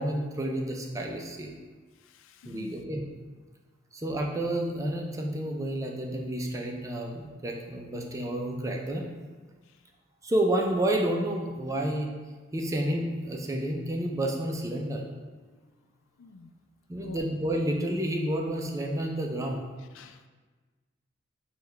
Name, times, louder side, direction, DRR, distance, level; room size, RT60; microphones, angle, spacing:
voice 1, 0.0-1.5 2.4-3.0 3.9-9.0 10.2-12.2 12.5-15.0 16.9-19.6, right 1 dB, 15° right, 1 dB, 0.4 m, -30 dB
voice 2, 2.0-2.7 15.4-15.7 16.2-16.5 16.9-17.2 19.9-20.3, left 3 dB, 80° left, 8 dB, 0.3 m, -47 dB
6.2 x 2.3 x 3.2 m, 1.4 s
head